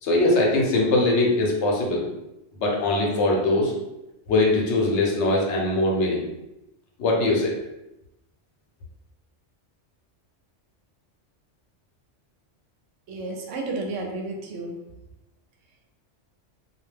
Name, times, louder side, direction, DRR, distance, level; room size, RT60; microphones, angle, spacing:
voice 1, 0.0-2.1 2.6-3.7 4.3-6.2 7.0-7.5, left 2 dB, 70° left, -1 dB, 0.9 m, -21 dB
voice 2, 13.1-14.8, right 2 dB, 80° right, 2 dB, 0.9 m, -32 dB
2.3 x 2.1 x 3.2 m, 0.91 s
omnidirectional pair, 1.3 m